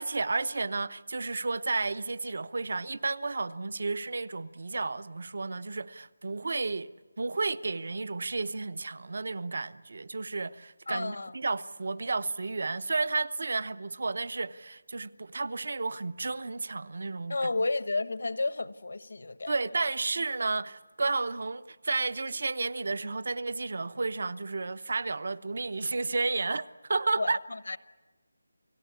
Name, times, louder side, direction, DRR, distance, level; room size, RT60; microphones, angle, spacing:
voice 1, 0.0-6.9 7.2-17.5 19.5-27.4, right 3 dB, 50° right, 0.8 m, -32 dB
voice 2, 10.9-11.3 17.3-19.5 27.2-27.8, left 3 dB, 65° left, 1.1 m, -32 dB
29.5 x 18.0 x 8.4 m
figure-of-eight pair, 175°, 0 cm